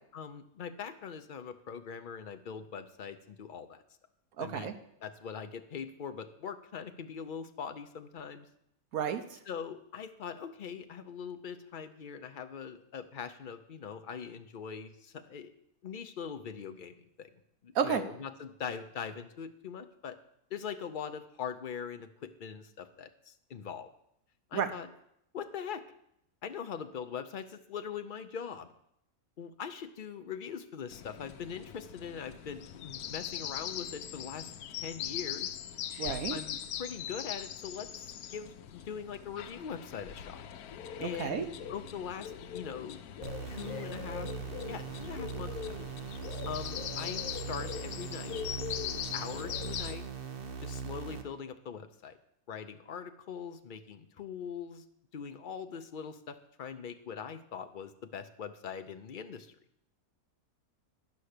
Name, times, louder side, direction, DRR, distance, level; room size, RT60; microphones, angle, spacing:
voice 1, 0.1-3.8 4.4-8.5 9.5-15.5 15.8-17.3 17.6-20.2 20.5-23.9 24.5-24.9 25.3-25.8 26.4-28.7 29.4-34.5 34.8-35.6 36.3-40.5 41.0-41.4 41.7-43.0 43.5-44.3 44.7-45.8 46.5-48.4 49.1-50.0 50.4-52.2 52.5-54.8 55.1-59.5, left 7 dB, 50° left, 8 dB, 0.6 m, -42 dB
voice 2, 4.4-4.7 8.9-9.4 17.7-18.0 24.5-24.7 36.0-36.4 41.0-41.5, right 7 dB, 75° right, 8 dB, 1.3 m, -32 dB
sound 1, 30.9-50.0, left 9 dB, 85° left, 1.1 m, -41 dB
sound 2, 43.2-51.2, right 6 dB, 45° right, 1.0 m, -40 dB
11.0 x 5.7 x 6.6 m, 0.75 s
omnidirectional pair, 1.6 m